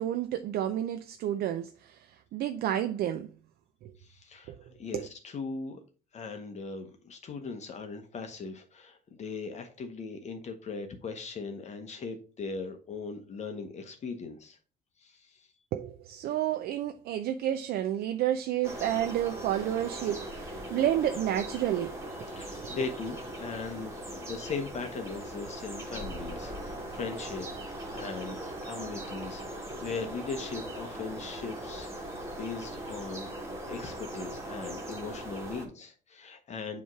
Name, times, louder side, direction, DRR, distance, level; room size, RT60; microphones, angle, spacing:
voice 1, 0.0-3.3 3.8-3.9 4.5-4.6 4.9-5.1 15.7-22.3, right 11 dB, 65° right, 0.5 m, -30 dB
voice 2, 4.0-5.8 6.1-14.6 15.0-15.5 22.3-32.1 32.4-33.3 33.7-36.8, left 4 dB, 40° left, 0.9 m, -39 dB
sound 1, 18.6-35.7, right 1 dB, 15° right, 1.7 m, -40 dB
7.2 x 3.1 x 4.7 m
cardioid pair, 110°, 17 cm